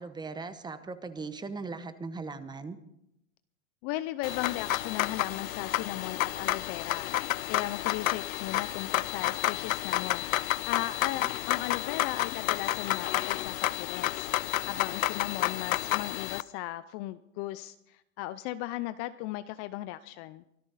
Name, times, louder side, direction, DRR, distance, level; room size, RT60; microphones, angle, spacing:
voice 1, 0.0-2.8 11.2-11.3, right 4 dB, 10° right, 12 dB, 1.0 m, -39 dB
voice 2, 3.8-7.1 7.5-20.4, left 15 dB, 35° left, 14 dB, 0.5 m, -37 dB
sound 1, 4.2-16.4, left 14 dB, 90° left, 0.6 m, -30 dB
24.0 x 13.0 x 4.1 m, 0.80 s
hypercardioid pair, 130°, 40 cm